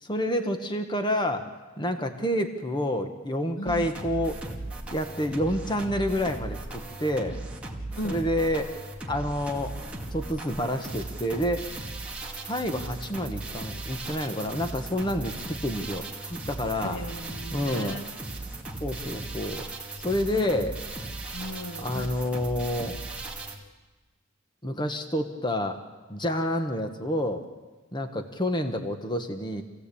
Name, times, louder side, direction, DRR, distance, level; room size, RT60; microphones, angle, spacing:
voice 1, 0.0-1.4 1.8-4.4 4.9-7.4 8.0-8.7 9.1-9.7 10.1-11.7 12.4-17.0 17.5-18.0 18.8-19.7 20.0-20.8 21.8-23.0 24.6-25.8 26.1-27.5 27.9-29.6, left 1 dB, 20° left, 6 dB, 1.3 m, -28 dB
voice 2, 3.6-3.9 8.0-8.2 16.8-18.0 20.3-20.5 21.3-22.1, equal, 65° left, 7 dB, 1.6 m, -36 dB
sound 1, 3.7-23.6, right 2 dB, 5° right, 2.3 m, -37 dB
27.0 x 16.5 x 8.6 m, 1.3 s
head